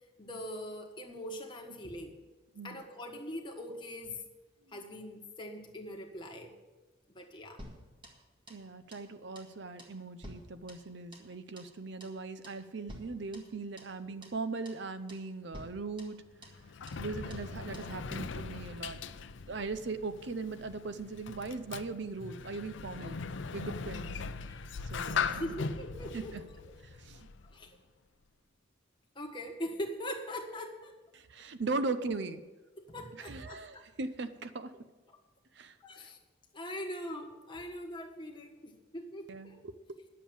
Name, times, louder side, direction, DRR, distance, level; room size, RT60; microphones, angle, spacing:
voice 1, 0.2-2.1 2.6-4.2 4.7-6.6 7.1-7.6 24.4-24.7 25.3-26.7 27.4-27.8 29.1-30.9 31.4-31.7 32.8-33.8 35.1-35.2 35.8-36.2 36.5-39.6, equal, 25° left, 2 dB, 1.4 m, -42 dB
sound 1, 7.6-8.7 8.9-9.1 9.3-9.5 9.8-11.3 11.6-11.7 12.0-12.2 12.4-12.6 12.9-14.0 14.2-14.4 14.6-14.8 15.1-15.3 15.5-16.6 16.9-17.0 17.3-17.5 17.7-17.9, equal, 25° right, 1.6 m, -51 dB
voice 2, 8.5-16.2 17.0-19.0 19.5-23.2 23.5-24.1 24.9-25.5 26.1-26.2 27.0-27.3 31.1-32.4 33.2-34.9 35.6-35.7 39.3-39.7, right 3 dB, 60° right, 11 dB, 0.6 m, -39 dB
Sliding door, 16.3-27.7, left 5 dB, 70° left, 0.5 m, -40 dB
10.5 x 7.3 x 8.6 m, 1.2 s
head